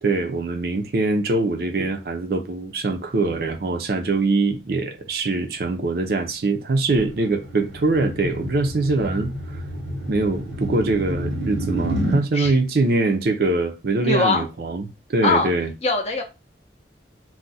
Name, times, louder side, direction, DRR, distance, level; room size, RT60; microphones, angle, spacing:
voice 1, 0.0-9.6 10.1-15.7, right 3 dB, 55° right, 0.5 m, -23 dB
sound 1, 6.9-12.2, equal, 85° right, 1.0 m, -29 dB
voice 2, 14.0-14.4 15.2-15.5 15.8-16.2, left 4 dB, 35° left, 0.5 m, -21 dB
2.4 x 2.1 x 3.9 m
head